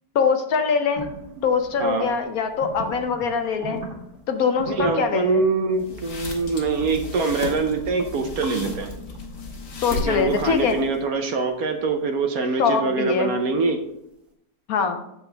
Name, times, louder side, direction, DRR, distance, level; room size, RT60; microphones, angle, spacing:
voice 1, 0.1-1.1 1.4-3.8 4.3-5.4 9.8-10.8 12.6-13.3 14.7-15.0, left 5 dB, 65° left, 6 dB, 1.2 m, -23 dB
sound 1, 0.9-13.8, right 3 dB, 45° right, 1.7 m, -42 dB
voice 2, 1.8-2.1 4.7-8.9 9.9-13.9, right 4 dB, 65° right, 6 dB, 1.2 m, -24 dB
sound 2, 5.8-11.0, left 3 dB, 85° left, 2.1 m, -35 dB
8.2 x 6.9 x 3.3 m, 0.81 s
omnidirectional pair, 1.8 m